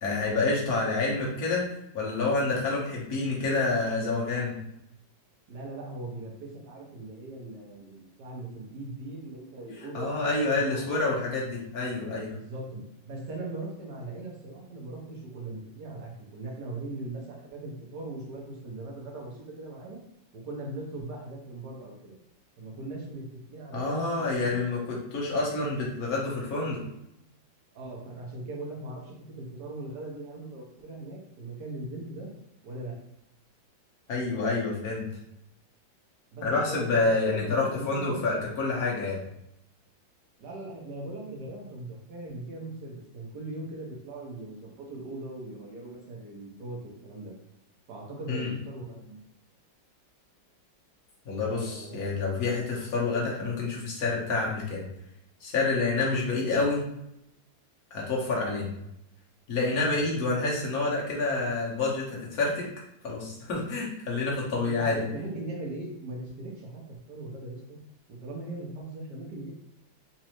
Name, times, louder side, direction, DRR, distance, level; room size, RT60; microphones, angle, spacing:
voice 1, 0.0-1.7 1.9-4.5 9.9-12.3 23.7-26.8 34.1-35.1 36.4-39.2 48.3-48.5 51.2-54.9 55.4-56.8 57.9-58.7 59.5-62.7 63.0-65.1, left 3 dB, 55° left, -4 dB, 1.4 m, -28 dB
voice 2, 5.5-10.2 10.4-10.9 12.3-20.0 20.3-22.2 22.6-24.6 27.7-32.3 32.6-33.0 36.3-38.5 40.4-47.3 47.9-49.2 51.4-52.3 55.9-56.1 59.9-60.1 64.6-66.8 67.1-67.8 68.1-69.5, right 2 dB, 65° right, -1 dB, 1.4 m, -40 dB
4.1 x 2.6 x 3.0 m, 0.82 s
omnidirectional pair, 2.1 m